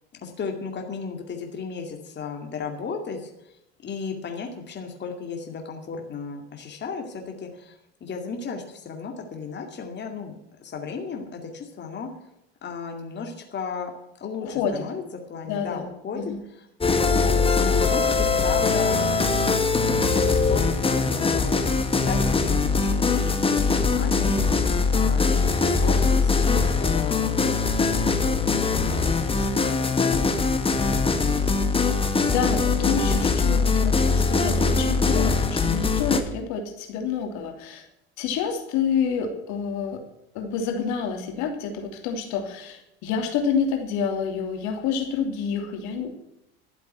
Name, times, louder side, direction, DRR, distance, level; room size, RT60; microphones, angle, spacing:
voice 1, 0.2-3.6 3.8-10.3 10.6-12.1 12.6-13.9 14.2-15.0 15.3-16.7 17.1-19.1 20.3-21.5 22.0-24.6 24.9-27.5 28.2-30.6 31.1-31.2, left 5 dB, 35° left, 3 dB, 2.4 m, -35 dB
voice 2, 14.4-14.9 15.5-15.9 16.1-16.4 32.3-37.9 38.2-40.0 40.3-46.1, left 6 dB, 65° left, 4 dB, 3.0 m, -28 dB
sound 1, 16.8-36.2, left 4 dB, 15° left, 1.7 m, -22 dB
12.5 x 7.6 x 9.2 m, 0.83 s
hypercardioid pair, 90°, 31 cm